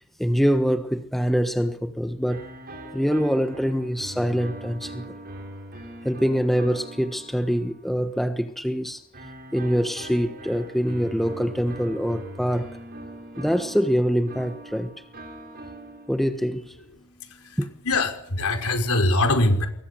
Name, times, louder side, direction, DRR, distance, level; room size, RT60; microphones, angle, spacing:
voice 1, 0.2-2.5 2.9-5.1 6.0-9.0 9.5-12.7 13.4-14.9 16.1-16.7 17.6-17.7, equal, ahead, 1.3 m, -24 dB
sound 1, 2.3-8.1 9.1-16.5, right 1 dB, 45° right, 6.9 m, -41 dB
voice 2, 17.0-17.6 17.8-19.7, left 2 dB, 70° left, 5.4 m, -23 dB
28.0 x 21.5 x 7.1 m
head